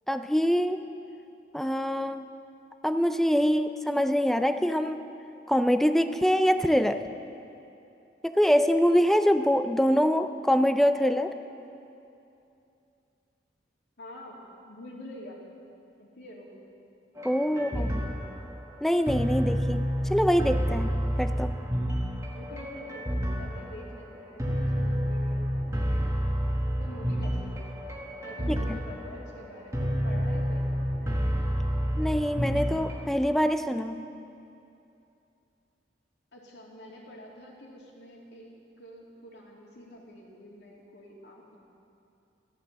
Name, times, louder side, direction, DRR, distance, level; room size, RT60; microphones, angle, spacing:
voice 1, 0.1-0.8 1.5-2.3 2.8-5.0 5.5-7.1 8.2-11.4 17.2-18.0 18.8-21.5 28.5-28.6 32.0-34.0, equal, ahead, 9 dB, 0.4 m, -24 dB
voice 2, 14.0-15.4 16.0-16.5 17.5-18.2 22.3-25.5 26.8-27.7 28.2-31.1 36.3-41.6, left 1 dB, 65° left, -2 dB, 2.9 m, -46 dB
sound 1, 17.2-33.1, equal, 15° right, 1.4 m, -29 dB
14.5 x 12.5 x 7.5 m, 2.7 s
head